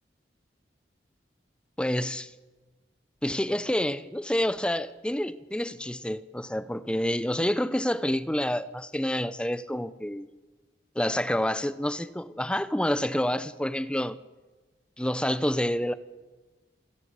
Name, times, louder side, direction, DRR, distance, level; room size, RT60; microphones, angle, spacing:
voice 1, 1.8-2.3 3.2-10.3 11.0-14.2 15.0-15.9, left 1 dB, 5° left, 0.6 m, -28 dB
28.5 x 11.5 x 8.2 m
head